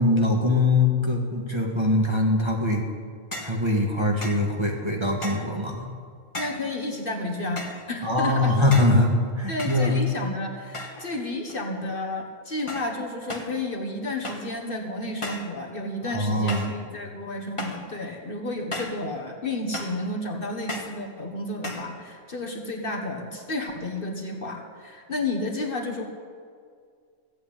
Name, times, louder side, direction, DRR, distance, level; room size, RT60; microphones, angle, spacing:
voice 1, 0.0-2.8 3.4-5.9 8.0-9.9 16.1-16.7, left 2 dB, 20° right, 0 dB, 1.6 m, -22 dB
sound 1, 3.3-3.6 4.2-4.5 5.2-5.6 6.3-6.7 7.6-7.9 8.7-9.0 9.6-10.2 10.7-11.1 11.4-11.9 12.7-13.0 13.3-13.6 14.2-14.6 15.2-15.6 16.5-16.8 17.6-17.9 18.7-19.1 19.7-20.1 20.7-21.0 21.6-21.9, left 1 dB, 25° left, 1.4 m, -36 dB
voice 2, 6.4-8.6 9.5-26.1, left 2 dB, 45° left, 1 dB, 1.5 m, -31 dB
14.5 x 8.4 x 8.9 m, 2.1 s
omnidirectional pair, 1.3 m